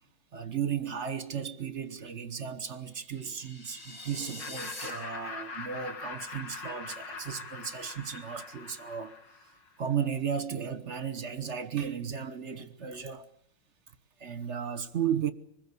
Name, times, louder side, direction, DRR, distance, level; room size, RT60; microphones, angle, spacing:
voice 1, 0.3-9.1 9.8-13.3 14.2-15.3, right 8 dB, 40° right, 1.3 m, -34 dB
sound 1, 2.9-4.9, left 2 dB, 40° left, 7.0 m, -44 dB
Laughter, 4.4-9.7, left 4 dB, 55° left, 2.9 m, -42 dB
25.5 x 21.5 x 8.4 m
omnidirectional pair, 2.3 m